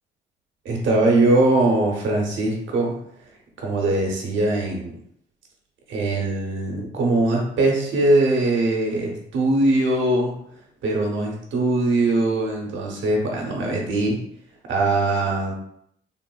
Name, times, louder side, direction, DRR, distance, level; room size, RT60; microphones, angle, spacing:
voice 1, 0.6-2.9 3.6-4.9 5.9-10.3 10.8-14.2 14.7-15.5, right 2 dB, 70° right, 0 dB, 0.9 m, -21 dB
3.7 x 2.1 x 2.3 m, 0.69 s
cardioid pair, 90°, 20 cm